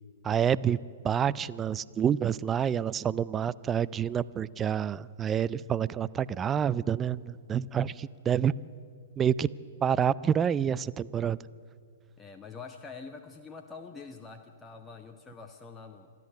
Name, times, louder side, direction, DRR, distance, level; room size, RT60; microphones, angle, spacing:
voice 1, 0.2-0.8 1.0-8.5 9.2-9.5 9.8-11.4, right 8 dB, 20° right, 19 dB, 0.4 m, -28 dB
voice 2, 12.2-16.1, left 4 dB, 15° left, 5 dB, 1.0 m, -45 dB
27.0 x 11.0 x 9.1 m, 2.4 s
figure-of-eight pair, 110°, 0 cm